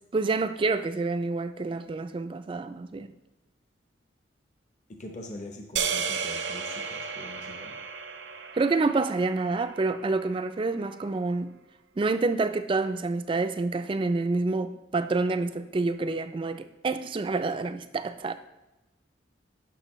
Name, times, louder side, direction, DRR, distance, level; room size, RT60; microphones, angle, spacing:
voice 1, 0.1-3.1 8.6-11.6 12.0-18.3, right 3 dB, 25° right, 0.3 m, -28 dB
voice 2, 5.0-7.8, left 1 dB, 40° left, 0.7 m, -43 dB
sound 1, 5.8-10.1, right 6 dB, 70° right, 0.6 m, -34 dB
11.0 x 6.1 x 3.1 m
head